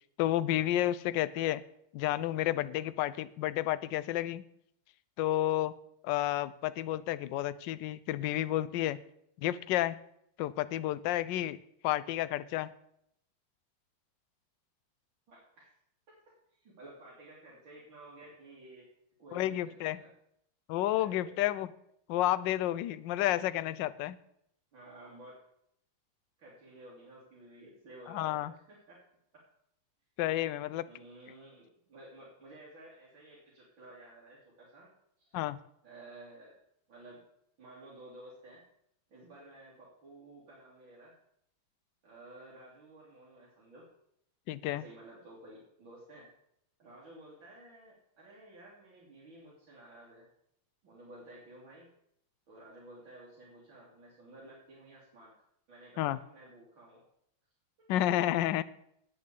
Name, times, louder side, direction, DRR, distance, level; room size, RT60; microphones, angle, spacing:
voice 1, 0.2-1.6 1.9-4.4 5.2-5.7 6.0-9.0 9.4-10.0 10.4-11.6 11.8-12.7 19.3-20.0 20.7-21.7 22.1-24.2 28.1-28.5 30.2-30.9 35.3-35.6 44.5-44.8 56.0-56.2 57.9-58.6, left 13 dB, 75° left, 16 dB, 1.1 m, -31 dB
voice 2, 15.3-15.7 16.1-16.2 16.5-18.9 19.2-20.1 21.0-21.5 24.7-25.4 26.4-29.0 29.3-29.4 30.9-34.9 35.2-35.4 35.8-36.6 36.9-37.2 37.6-38.6 39.1-41.1 42.0-43.9 44.7-46.3 46.8-50.3 50.8-51.9 52.5-55.3 55.7-57.0 57.8-57.9, right 1 dB, 65° right, -6 dB, 3.5 m, -53 dB
8.7 x 8.3 x 8.2 m, 0.73 s
omnidirectional pair, 2.3 m